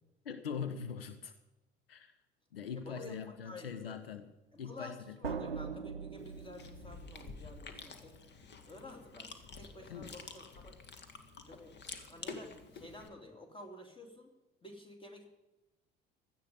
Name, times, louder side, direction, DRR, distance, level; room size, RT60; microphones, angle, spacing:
voice 1, 0.2-1.3 1.9-2.1 2.5-4.3 4.6-5.2 9.9-10.1, left 6 dB, 80° left, 10 dB, 0.8 m, -42 dB
sound 1, 2.6-2.9 5.2-7.9, right 6 dB, 90° right, 0.6 m, -42 dB
voice 2, 2.7-4.0 4.5-8.1 8.7-10.8 11.5-11.8 12.1-14.3 14.6-15.3, left 2 dB, 15° left, 4 dB, 3.0 m, -51 dB
Chewing mastication, 6.2-13.1, left 4 dB, 35° left, 1.7 m, -49 dB
16.5 x 12.0 x 5.2 m, 0.99 s
figure-of-eight pair, 60°, 29 cm